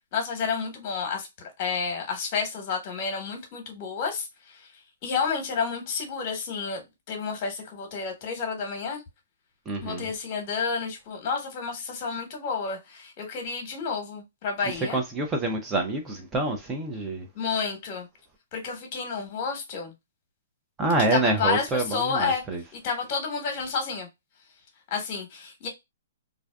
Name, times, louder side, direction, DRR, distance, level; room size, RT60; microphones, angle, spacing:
voice 1, 0.1-1.3 1.6-4.6 5.0-9.0 9.8-15.0 17.3-18.1 18.5-19.9 21.1-22.4 22.7-24.1 24.9-25.7, left 5 dB, 40° left, 1.0 m, -30 dB
voice 2, 9.7-10.1 14.9-17.3 20.8-22.6, right 2 dB, 15° right, 0.4 m, -27 dB
2.5 x 2.3 x 2.2 m
hypercardioid pair, 150°, 0 cm